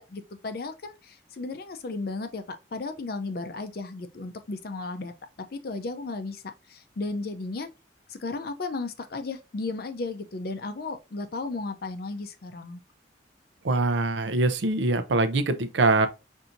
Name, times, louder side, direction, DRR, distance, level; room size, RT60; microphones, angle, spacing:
voice 1, 0.0-5.1 5.5-6.4 6.7-7.7 8.1-12.8, left 3 dB, 55° left, 0.5 m, -34 dB
voice 2, 13.6-16.1, right 3 dB, 70° right, 0.5 m, -23 dB
5.7 x 2.6 x 2.6 m
head